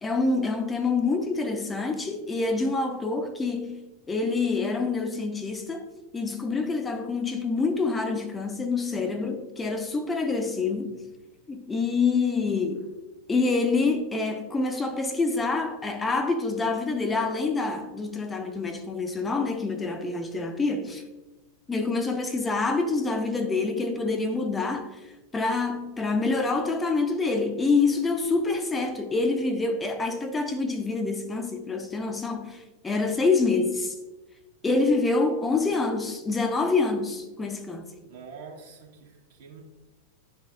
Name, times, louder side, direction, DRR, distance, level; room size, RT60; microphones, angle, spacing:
voice 1, 0.0-5.8 6.1-11.0 11.5-12.9 13.3-21.0 21.7-33.9 34.6-37.9, left 3 dB, 15° left, 0.6 m, -26 dB
voice 2, 38.1-39.6, right 5 dB, 55° right, 1.4 m, -45 dB
10.5 x 3.9 x 2.4 m
figure-of-eight pair, 90°, 0 cm